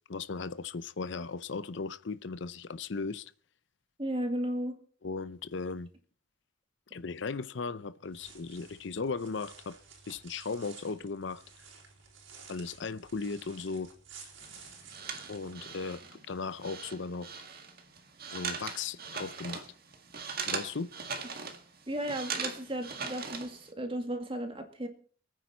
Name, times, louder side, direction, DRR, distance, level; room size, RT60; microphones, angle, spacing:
voice 1, 0.1-3.3 5.0-5.9 6.9-9.8 10.1-11.4 12.5-13.9 15.3-17.3 18.3-19.7 20.5-20.9, left 4 dB, 60° left, 0.6 m, -37 dB
voice 2, 4.0-4.8 21.9-24.9, right 1 dB, 25° right, 2.3 m, -34 dB
sound 1, 8.0-15.5, right 5 dB, 70° right, 4.3 m, -53 dB
sound 2, 14.4-23.7, right 5 dB, 50° right, 1.8 m, -40 dB
25.0 x 9.5 x 4.4 m
head